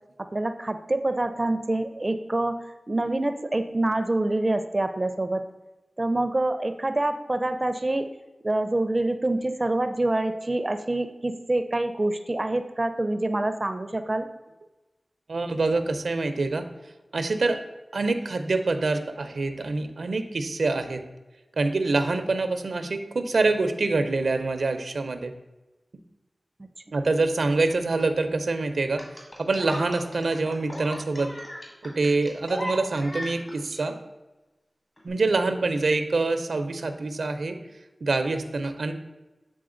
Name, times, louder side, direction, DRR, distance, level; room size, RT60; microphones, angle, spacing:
voice 1, 0.3-5.5 6.0-8.1 8.4-14.3, right 2 dB, 35° right, 9 dB, 0.4 m, -26 dB
voice 2, 15.3-16.6 17.1-17.6 17.9-21.0 21.6-25.3 26.9-29.0 29.4-31.3 31.8-33.9 35.0-37.6 38.0-38.9, right 3 dB, 85° right, 8 dB, 0.5 m, -25 dB
sound 1, 29.0-33.8 35.0-35.1, equal, 45° left, 1.8 m, -37 dB
7.8 x 3.7 x 3.7 m, 1.1 s
wide cardioid pair, 65°, 0 cm